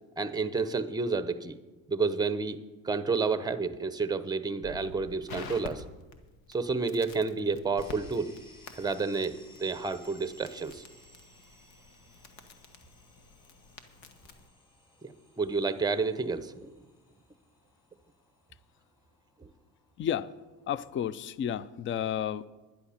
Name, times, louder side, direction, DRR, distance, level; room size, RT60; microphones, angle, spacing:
voice 1, 0.2-1.6 1.9-5.8 6.5-8.3 8.8-9.3 9.6-10.8 15.0-16.7 19.4-19.5, right 4 dB, 10° right, 12 dB, 0.7 m, -30 dB
Crackle, 4.6-14.5, left 4 dB, 80° left, 1.3 m, -49 dB
sound 1, 7.8-21.5, left 1 dB, 15° left, 5.3 m, -60 dB
voice 2, 20.0-20.3 20.7-22.4, left 9 dB, 35° left, 19 dB, 0.4 m, -31 dB
11.0 x 10.5 x 5.7 m, 1.2 s
supercardioid pair, 100°, 38 cm